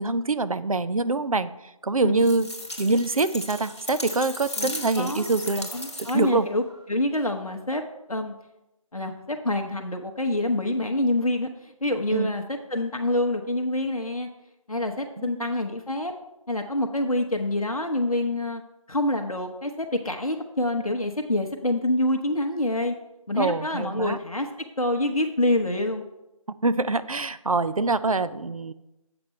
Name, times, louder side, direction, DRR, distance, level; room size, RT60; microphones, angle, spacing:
voice 1, 0.0-1.5 1.8-2.5 2.8-5.7 6.1-6.5 12.1-12.3 15.2-15.4 23.4-24.2 26.6-28.7, right 3 dB, 70° right, 14 dB, 0.5 m, -24 dB
sound 1, 2.2-6.4, left 1 dB, 50° left, 1.1 m, -36 dB
voice 2, 4.6-5.3 5.7-6.6 6.9-7.8 8.1-8.3 8.9-14.3 14.7-16.1 16.5-18.6 18.9-22.9 23.3-26.0 27.8-27.9, left 1 dB, 75° left, 4 dB, 0.8 m, -26 dB
7.9 x 6.0 x 4.2 m, 0.92 s
figure-of-eight pair, 170°, 18 cm